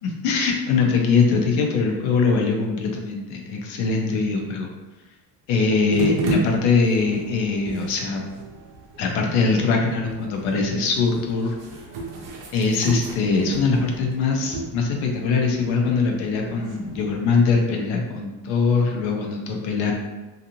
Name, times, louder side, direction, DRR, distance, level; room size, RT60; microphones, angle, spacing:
voice 1, 0.0-4.7 5.5-8.2 9.0-11.5 12.5-19.9, left 4 dB, 80° left, 1 dB, 0.7 m, -22 dB
sound 1, 5.9-17.2, right 2 dB, 45° right, 0.5 m, -33 dB
2.6 x 2.4 x 2.8 m, 1.1 s
cardioid pair, 180°, 46 cm